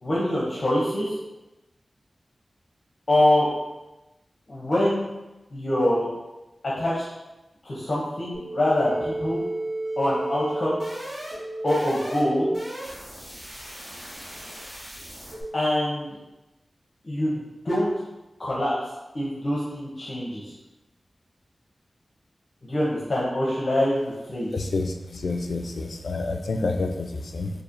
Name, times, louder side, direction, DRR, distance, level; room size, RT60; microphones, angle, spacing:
voice 1, 0.0-1.1 3.1-3.5 4.5-5.1 5.5-6.1 6.6-7.0 7.6-9.4 10.0-10.8 11.6-12.5 15.5-16.1 17.0-17.4 17.6-17.9 18.4-18.7 19.1-20.5 22.6-24.5, left 1 dB, 50° left, -6 dB, 0.7 m, -24 dB
sound 1, 8.3-15.4, right 1 dB, 30° right, 1.4 m, -33 dB
voice 2, 24.5-27.5, left 3 dB, 80° left, 5 dB, 0.3 m, -28 dB
4.1 x 2.7 x 2.6 m, 1.0 s
wide cardioid pair, 100°, 0 cm